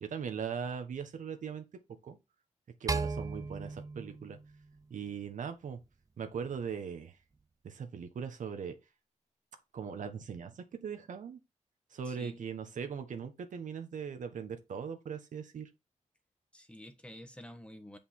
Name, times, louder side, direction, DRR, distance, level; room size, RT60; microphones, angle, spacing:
voice 1, 0.0-1.6 2.0-2.2 2.8-4.4 4.9-5.8 6.2-7.2 7.6-8.8 9.7-11.4 11.9-15.7, right 6 dB, 85° right, 1.3 m, -40 dB
sound 1, 2.9-5.3, right 4 dB, 25° right, 0.5 m, -37 dB
voice 2, 12.0-12.5 16.5-18.0, left 1 dB, 10° left, 1.3 m, -49 dB
7.6 x 5.4 x 4.4 m
wide cardioid pair, 100°, 13 cm